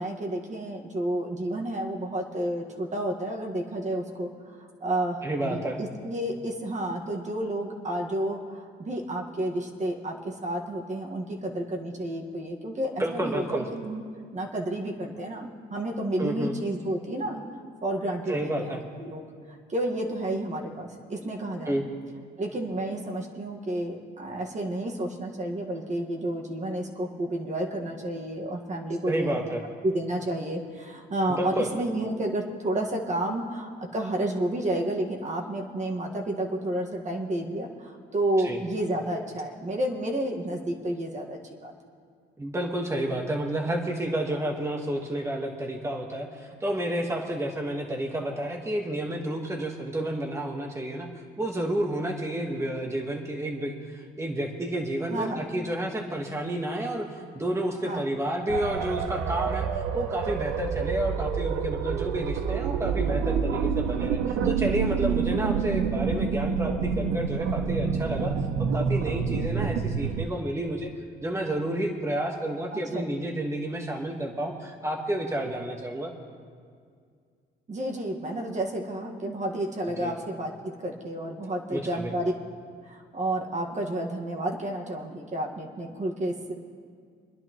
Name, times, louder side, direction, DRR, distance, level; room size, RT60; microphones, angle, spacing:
voice 1, 0.0-14.0 14.3-17.4 17.8-21.9 22.4-29.5 29.8-41.7 55.1-55.5 57.8-58.1 72.7-73.0 77.7-82.3 82.9-86.5, right 1 dB, 35° right, 0 dB, 1.7 m, -31 dB
voice 2, 5.2-5.8 13.0-13.7 16.2-16.5 18.3-18.8 21.6-21.8 29.0-29.6 31.4-31.7 38.4-38.6 42.4-51.1 51.4-68.3 68.7-70.9 71.2-76.1 80.0-80.1 81.7-82.1, right 1 dB, 15° right, 1 dB, 1.4 m, -30 dB
sound 1, 58.5-70.3, right 6 dB, 90° right, 0.7 m, -27 dB
26.5 x 10.5 x 3.1 m, 2.1 s
cardioid pair, 90°, 20 cm